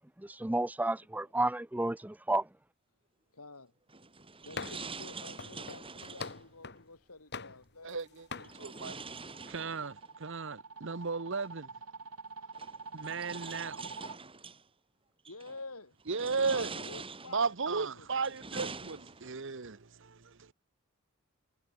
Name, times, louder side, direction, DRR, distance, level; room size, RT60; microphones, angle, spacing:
voice 1, 0.2-2.5, right 2 dB, 5° right, 0.5 m, -31 dB
voice 2, 3.3-3.7 4.4-8.0 8.4-8.7 15.3-16.0 16.5-18.1, left 3 dB, 90° left, 6.7 m, -49 dB
sound 1, 3.9-6.4 8.4-10.1 11.4-11.5 12.5-14.6 15.2-15.6 16.1-17.5 18.0-19.5, right 4 dB, 25° right, 5.4 m, -45 dB
sound 2, 4.6-5.0 5.4-6.9 7.3-8.0 8.3-8.6, left 4 dB, 50° left, 2.2 m, -43 dB
voice 3, 7.8-9.0 9.5-11.7 12.9-13.8 16.1-16.7 17.3-20.5, right 4 dB, 60° right, 1.0 m, -35 dB
sound 3, 8.0-14.2, right 4 dB, 85° right, 4.0 m, -47 dB
head